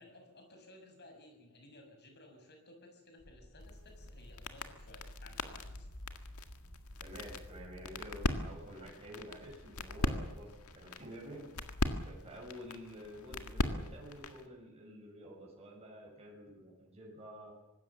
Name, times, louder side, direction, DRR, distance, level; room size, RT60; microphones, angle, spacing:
voice 1, 0.0-5.9, left 2 dB, 50° left, 4 dB, 6.2 m, -57 dB
sound 1, 3.2-10.9, equal, 25° left, 5.6 m, -60 dB
sound 2, 3.6-14.5, left 2 dB, 85° left, 1.9 m, -40 dB
voice 2, 7.0-11.5 12.0-17.5, equal, 30° right, -2 dB, 6.6 m, -50 dB
25.0 x 20.0 x 7.2 m, 0.98 s
head